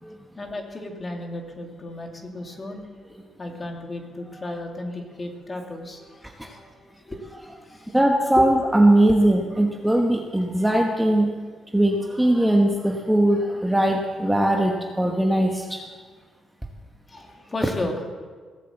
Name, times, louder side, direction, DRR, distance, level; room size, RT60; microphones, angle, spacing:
voice 1, 0.0-2.8 3.4-8.0 8.4-8.5 17.1-18.1, left 2 dB, 25° left, 3 dB, 2.2 m, -34 dB
voice 2, 7.9-11.3 11.7-15.8, right 1 dB, 5° right, 2 dB, 1.1 m, -20 dB
17.0 x 7.8 x 8.0 m, 1.5 s
cardioid pair, 115°, 0 cm